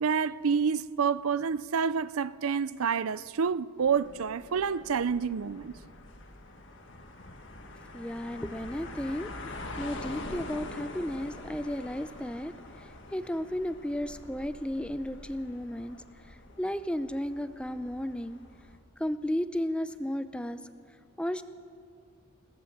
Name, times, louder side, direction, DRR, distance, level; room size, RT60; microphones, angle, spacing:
voice 1, 0.0-5.7, right 6 dB, 80° right, 0.5 m, -28 dB
sound 1, 3.8-18.8, left 2 dB, 55° left, 1.9 m, -45 dB
voice 2, 7.9-9.3 9.8-12.5 13.1-16.0 16.3-18.4 19.0-20.6 21.2-21.4, left 1 dB, 5° left, 0.5 m, -33 dB
21.5 x 17.0 x 7.3 m
head